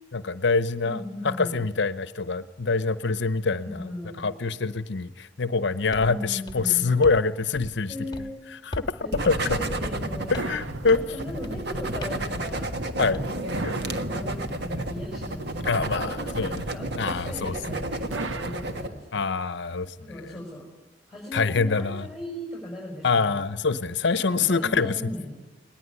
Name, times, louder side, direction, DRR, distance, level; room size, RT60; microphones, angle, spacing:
voice 1, 0.1-3.9 4.2-7.9 8.7-9.0 9.3-9.6 10.3-11.0 13.0-13.2 13.6-13.7 15.6-16.6 17.0-17.5 19.1-20.3 21.3-22.1 23.0-24.9, left 4 dB, 65° left, 14 dB, 0.8 m, -25 dB
voice 2, 0.8-1.6 3.6-4.3 6.0-6.9 7.9-8.5 9.0-10.4 10.8-12.7 13.4-19.2 19.6-19.7 20.0-20.6 21.1-23.4 24.3-25.3, left 1 dB, ahead, -2 dB, 6.2 m, -38 dB
sound 1, 5.9-6.1 6.5-7.3 7.5-7.9 8.1-8.3 8.7-9.0 9.2-9.4 9.8-10.1 10.3-10.6 10.9-11.1 11.4-11.7 12.0-12.3 12.6-12.8 13.1-14.0, left 1 dB, 25° left, 1.4 m, -40 dB
sound 2, 9.1-18.9, right 1 dB, 60° right, 1.6 m, -31 dB
sound 3, 10.4-11.5 13.5-14.7 18.1-19.4, right 3 dB, 85° right, 1.0 m, -37 dB
21.0 x 19.5 x 9.8 m, 1.0 s
head